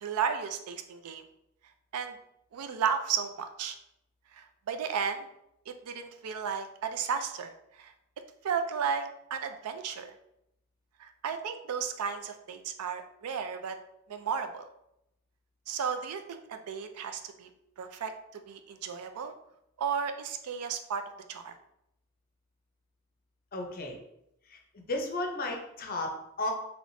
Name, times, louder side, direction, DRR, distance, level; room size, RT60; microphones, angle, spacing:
voice 1, 0.0-1.2 1.9-2.2 2.5-3.8 4.3-5.3 5.7-7.5 7.8-7.9 8.4-10.1 11.0-13.8 14.1-14.6 15.7-17.5 17.8-19.3 19.8-21.0 21.3-21.5, right 6 dB, 85° right, 7 dB, 0.4 m, -34 dB
voice 2, 23.5-24.0 24.5-26.5, left 2 dB, 40° left, 2 dB, 0.6 m, -34 dB
3.2 x 2.9 x 2.6 m, 0.80 s
head